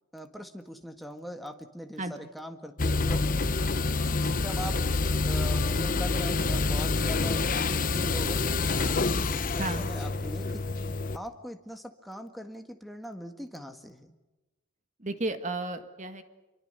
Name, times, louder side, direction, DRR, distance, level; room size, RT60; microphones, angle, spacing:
voice 1, 0.1-3.3 4.2-9.0 9.3-10.6 11.1-14.1, equal, ahead, 5 dB, 1.7 m, -41 dB
sound 1, 2.8-11.2, left 3 dB, 40° left, 0.9 m, -27 dB
voice 2, 15.0-16.2, right 2 dB, 35° right, 9 dB, 1.8 m, -33 dB
26.5 x 23.5 x 6.8 m, 1.1 s
head